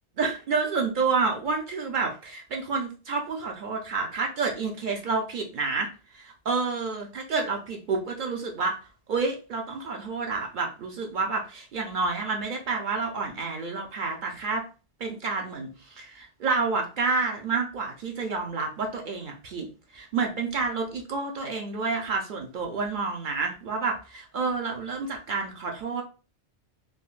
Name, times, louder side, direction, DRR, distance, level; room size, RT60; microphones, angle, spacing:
voice 1, 0.2-5.9 6.1-8.8 9.1-14.6 15.0-19.7 19.9-26.0, right 4 dB, 55° right, 2 dB, 0.6 m, -29 dB
3.7 x 2.0 x 2.4 m, 0.34 s
omnidirectional pair, 1.2 m